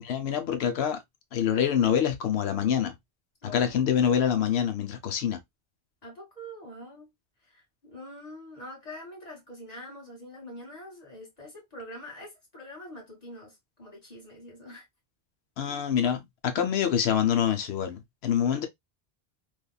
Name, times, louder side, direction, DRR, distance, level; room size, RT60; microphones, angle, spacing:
voice 1, 0.0-1.0 1.3-2.9 3.4-5.4 15.6-18.7, left 8 dB, 85° left, 0.9 m, -26 dB
voice 2, 3.4-3.8 6.0-7.1 7.4-14.9 18.5-18.7, left 1 dB, 40° left, 1.7 m, -45 dB
3.3 x 2.3 x 2.2 m
omnidirectional pair, 1.1 m